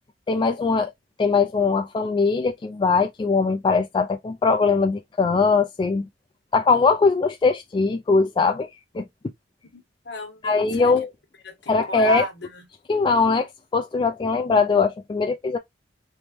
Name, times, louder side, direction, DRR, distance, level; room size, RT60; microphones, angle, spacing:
voice 1, 0.3-0.9 1.2-6.1 6.5-8.7 8.9-9.0 10.4-11.1 11.7-12.2 12.9-15.6, left 4 dB, 25° left, 0.3 m, -21 dB
voice 2, 9.7-10.9 11.4-12.3 12.6-12.7, equal, 65° left, 1.4 m, -32 dB
3.5 x 2.9 x 3.0 m
head